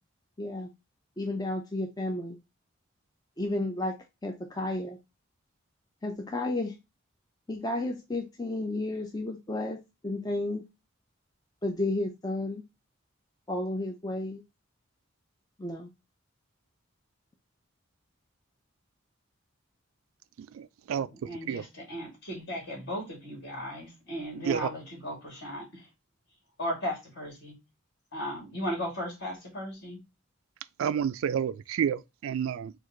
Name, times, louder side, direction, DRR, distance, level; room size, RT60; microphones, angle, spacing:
voice 1, 0.4-0.7 1.2-2.4 3.4-4.0 4.2-5.0 6.0-6.8 7.5-9.8 10.0-10.6 11.6-12.6 13.5-14.4 15.6-15.9, left 2 dB, 20° left, 0.5 m, -32 dB
voice 2, 20.5-21.1 21.5-21.6 24.4-24.6 30.8-32.7, right 8 dB, 85° right, 0.3 m, -29 dB
voice 3, 21.1-25.9 26.6-27.5 28.1-30.0, equal, 55° left, 2.4 m, -36 dB
4.6 x 2.4 x 3.7 m
head